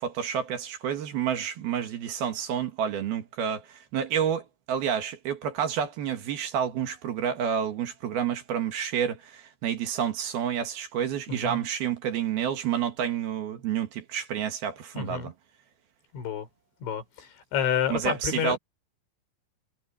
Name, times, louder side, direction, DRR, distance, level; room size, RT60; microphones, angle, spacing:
voice 1, 0.0-15.3 17.9-18.6, right 8 dB, 60° right, 3.4 m, -29 dB
voice 2, 11.3-11.6 14.9-15.3 16.1-16.5 16.8-18.6, left 8 dB, 85° left, 6.7 m, -29 dB
omnidirectional pair, 5.2 m